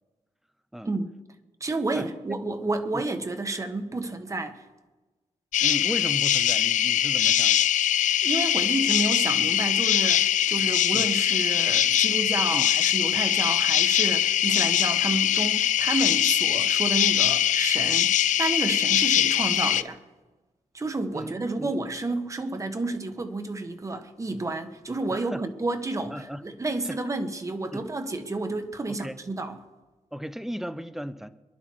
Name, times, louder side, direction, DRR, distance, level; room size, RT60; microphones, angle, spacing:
voice 1, 1.6-4.6 8.2-20.0 20.7-29.6, right 2 dB, 25° right, 1.4 m, -30 dB
sound 1, 5.5-19.8, left 11 dB, 90° left, 0.5 m, -22 dB
voice 2, 5.6-7.7 10.9-11.1 12.5-12.7 21.1-21.8 25.1-25.4 26.1-26.4 26.8-27.0 27.7-27.9 28.9-29.2 30.1-31.3, equal, 5° right, 0.7 m, -36 dB
26.0 x 11.0 x 4.7 m
wide cardioid pair, 115°, 13 cm